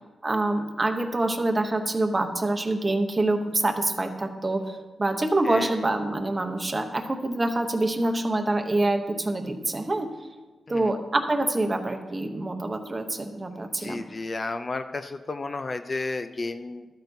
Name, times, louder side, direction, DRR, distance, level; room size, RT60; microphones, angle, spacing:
voice 1, 0.2-10.1 10.7-14.0, right 2 dB, 25° right, 6 dB, 0.8 m, -26 dB
voice 2, 5.4-5.8 10.7-11.0 13.6-16.9, left 3 dB, 35° left, 9 dB, 0.3 m, -33 dB
12.5 x 8.9 x 2.7 m, 1.2 s
wide cardioid pair, 120°, 0 cm